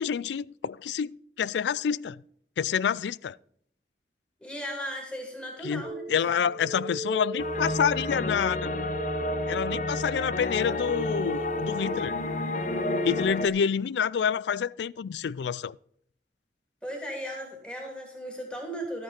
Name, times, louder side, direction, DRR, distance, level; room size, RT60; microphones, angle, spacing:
voice 1, 0.0-2.2 2.6-3.4 5.6-8.7 9.5-12.1 13.0-15.8, left 7 dB, 80° left, 0.3 m, -28 dB
voice 2, 4.4-6.0 16.8-19.0, equal, 5° left, 3.1 m, -36 dB
sound 1, 5.8-13.2, right 1 dB, 30° right, 1.3 m, -37 dB
sound 2, 7.4-13.5, left 2 dB, 45° left, 0.8 m, -31 dB
12.5 x 9.0 x 4.4 m
head